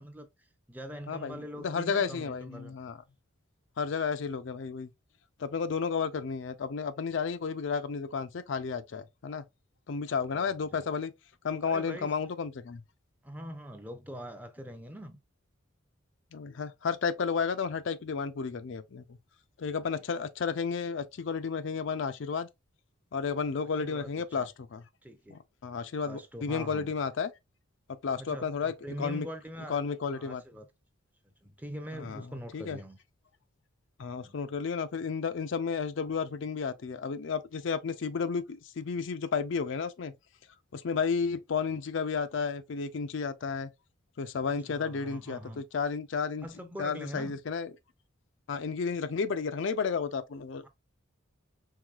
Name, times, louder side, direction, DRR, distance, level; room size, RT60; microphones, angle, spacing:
voice 1, 0.0-2.8 10.3-10.9 11.6-12.1 13.2-15.2 23.8-24.5 25.0-25.4 26.0-26.9 28.2-29.8 30.1-30.7 31.4-33.0 34.2-34.4 44.5-45.6 46.4-47.4 50.6-50.7, equal, 10° right, 0.5 m, -43 dB
voice 2, 1.1-3.0 3.8-4.9 5.4-9.4 9.9-11.1 11.4-12.8 16.3-19.2 19.6-22.5 23.1-24.8 25.3-27.3 28.0-28.7 29.0-29.3 29.7-30.4 31.9-32.3 32.5-32.8 34.0-40.1 40.7-43.7 44.2-46.5 46.8-47.7 48.5-50.6, left 5 dB, 65° left, 0.4 m, -32 dB
4.8 x 3.6 x 2.3 m
head